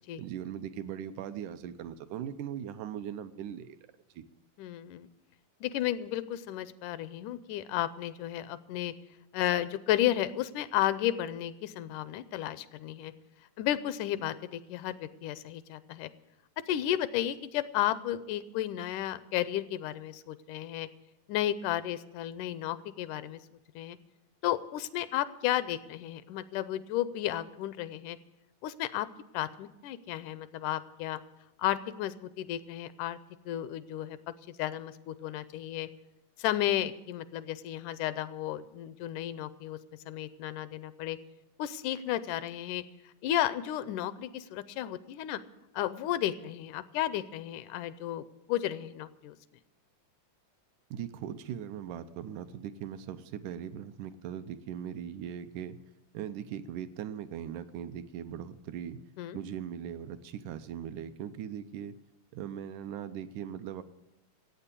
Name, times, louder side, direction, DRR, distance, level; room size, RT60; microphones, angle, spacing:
voice 1, 0.2-3.8 4.2-4.3 50.9-55.8 56.1-59.0 59.3-62.0 62.3-63.8, right 9 dB, 80° right, 10 dB, 2.2 m, -39 dB
voice 2, 4.6-5.1 5.6-8.9 9.3-13.1 13.6-16.1 16.7-20.9 21.3-23.4 23.8-24.0 24.4-28.2 28.6-29.1 29.3-31.2 31.6-33.2 33.5-34.2 34.6-35.9 36.4-39.8 40.1-41.2 41.6-42.8 43.2-45.4 45.7-49.4 59.2-59.4, left 12 dB, 85° left, 15 dB, 2.1 m, -33 dB
14.5 x 8.8 x 8.3 m, 0.90 s
omnidirectional pair, 3.6 m